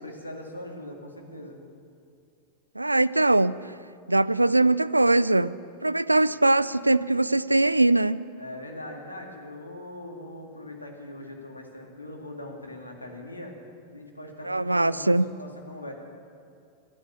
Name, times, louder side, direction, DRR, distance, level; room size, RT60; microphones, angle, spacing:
voice 1, 0.0-1.6 8.4-13.6 13.9-15.9, left 1 dB, 80° left, 1 dB, 2.1 m, -41 dB
voice 2, 2.8-3.6 4.1-5.5 5.8-8.2 14.4-15.3, right 2 dB, 85° right, 17 dB, 0.3 m, -21 dB
12.0 x 11.0 x 8.5 m, 2.5 s
figure-of-eight pair, 90°, 0 cm